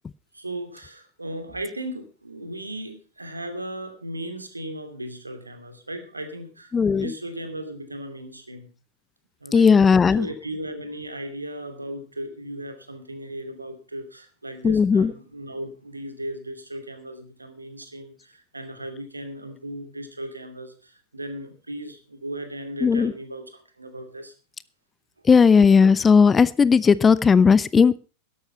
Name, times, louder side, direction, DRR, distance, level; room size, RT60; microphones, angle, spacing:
voice 1, 0.3-8.7 9.4-9.7 10.2-24.3, right 1 dB, 80° right, 8 dB, 2.6 m, -36 dB
voice 2, 6.7-7.1 9.5-10.3 14.6-15.1 22.8-23.1 25.2-28.0, left 5 dB, 15° left, 19 dB, 0.6 m, -16 dB
13.0 x 11.0 x 5.7 m, 0.35 s
figure-of-eight pair, 90°, 0 cm